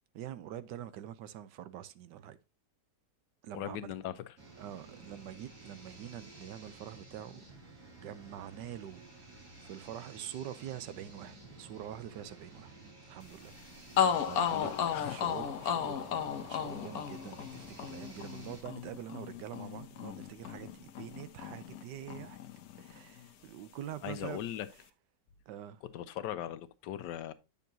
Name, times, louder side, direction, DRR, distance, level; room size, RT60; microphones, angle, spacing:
voice 1, 0.1-2.4 3.4-3.9 4.6-7.4 8.0-9.0 9.6-12.7 13.1-13.5 14.2-14.8 15.1-22.4 22.8-24.4 25.5-25.8, right 11 dB, 85° right, 1.3 m, -45 dB
voice 2, 3.5-4.3 14.4-15.2 24.0-24.7 25.9-27.3, left 11 dB, 85° left, 1.3 m, -39 dB
sound 1, 4.4-18.6, right 2 dB, 45° right, 2.7 m, -53 dB
sound 2, 13.5-13.6 14.0-21.8 22.1-23.2, left 8 dB, 65° left, 1.1 m, -34 dB
8.4 x 6.9 x 2.7 m
omnidirectional pair, 1.9 m